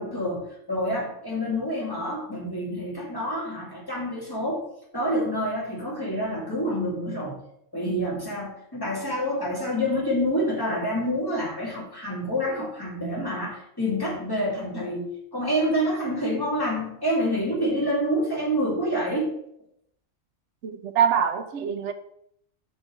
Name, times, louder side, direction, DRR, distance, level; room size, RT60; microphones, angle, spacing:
voice 1, 0.0-4.6 4.9-7.4 7.7-19.3, equal, 15° left, 2.4 m, -27 dB
voice 2, 20.6-21.9, right 8 dB, 70° right, 1.0 m, -24 dB
6.1 x 4.6 x 6.3 m
omnidirectional pair, 1.3 m